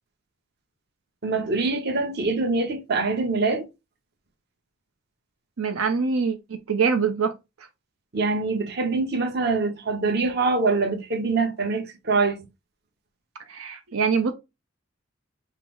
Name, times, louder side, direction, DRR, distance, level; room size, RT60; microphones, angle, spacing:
voice 1, 1.2-3.7 8.1-12.5, right 3 dB, 50° right, 0.9 m, -24 dB
voice 2, 5.6-7.3 13.5-14.3, right 5 dB, 80° right, 0.6 m, -24 dB
5.7 x 2.0 x 4.5 m
head